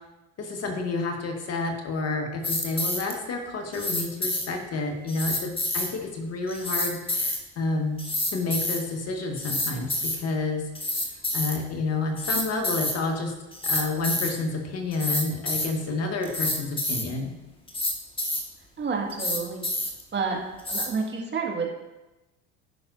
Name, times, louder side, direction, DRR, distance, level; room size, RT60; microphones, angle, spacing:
voice 1, 0.4-8.0 8.3-10.6 11.0-13.3 13.6-17.3, left 3 dB, 45° left, 2 dB, 1.7 m, -30 dB
sound 1, 2.4-3.1 3.7-4.5 5.1-5.9 6.5-7.4 8.0-8.8 9.4-10.2 10.7-11.6 12.2-13.0 13.5-14.3 14.9-15.7 16.2-17.0 17.7-18.4 19.1-20.0 20.6-20.9, left 1 dB, 15° left, 1.6 m, -28 dB
voice 2, 18.8-19.7 20.1-20.4 20.7-21.7, right 4 dB, 30° right, 0 dB, 2.0 m, -29 dB
14.5 x 6.0 x 2.7 m, 1.0 s
hypercardioid pair, 80°, 35 cm